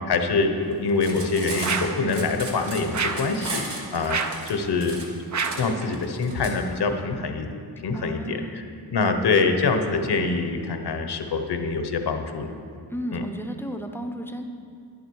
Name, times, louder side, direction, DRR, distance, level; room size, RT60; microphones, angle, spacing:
voice 1, 0.1-4.2 4.5-5.0 5.6-7.5 7.8-8.6 8.9-12.5 13.1-13.2, left 4 dB, 70° left, 6 dB, 1.1 m, -25 dB
Cutlery silverware, 0.9-6.5, right 2 dB, 85° right, 2.0 m, -35 dB
sound 1, 1.6-2.0 2.9-3.3 4.1-4.5 5.3-5.7, right 5 dB, 45° right, 0.6 m, -28 dB
voice 2, 7.9-8.6 12.9-14.4, equal, 5° left, 5 dB, 0.7 m, -33 dB
11.0 x 11.0 x 4.7 m, 2.4 s
wide cardioid pair, 145°, 41 cm